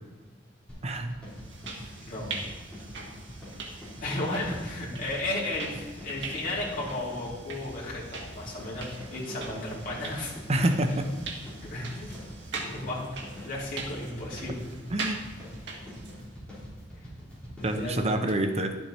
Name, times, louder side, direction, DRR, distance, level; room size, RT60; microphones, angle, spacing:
sound 1, 0.7-18.1, equal, 5° left, 3.5 m, -45 dB
voice 1, 0.8-1.1 10.5-11.1 14.9-15.2 17.6-18.8, right 1 dB, 35° right, 6 dB, 0.7 m, -27 dB
sound 2, 1.3-16.3, right 3 dB, 70° right, 1.6 m, -42 dB
voice 2, 4.0-10.3 11.6-12.1 12.6-13.0 13.4-14.7 17.4-18.2, left 2 dB, 50° left, -6 dB, 3.1 m, -34 dB
11.5 x 7.1 x 4.2 m, 1.4 s
head